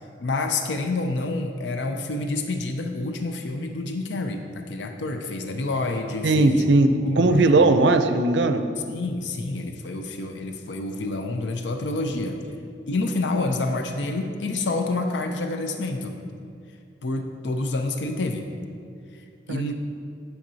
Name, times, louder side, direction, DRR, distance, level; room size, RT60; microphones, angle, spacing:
voice 1, 0.2-6.6 7.0-7.5 8.9-12.4 12.9-16.2 17.0-18.5 19.1-19.7, left 2 dB, 85° left, 5 dB, 0.5 m, -28 dB
voice 2, 6.2-8.7 19.5-19.7, right 2 dB, 75° right, 8 dB, 0.5 m, -19 dB
10.5 x 6.4 x 2.8 m, 2.4 s
head